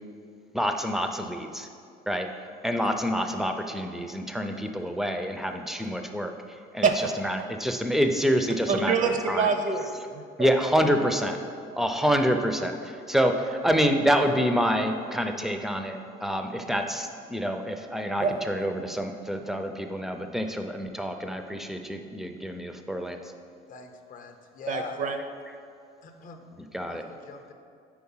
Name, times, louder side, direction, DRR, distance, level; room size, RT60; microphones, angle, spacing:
voice 1, 0.5-1.7 2.1-2.3 2.6-6.3 6.7-6.9 7.2-9.5 10.4-11.4 11.7-23.2 26.7-27.0, equal, ahead, 5 dB, 0.4 m, -27 dB
voice 2, 6.8-7.2 8.7-10.5 18.2-18.4 24.7-25.2, right 5 dB, 50° right, 6 dB, 0.6 m, -26 dB
voice 3, 23.7-25.0 26.0-26.5 26.8-27.5, left 5 dB, 50° left, 5 dB, 0.6 m, -42 dB
4.7 x 4.1 x 5.5 m, 2.3 s
cardioid pair, 110°, 17 cm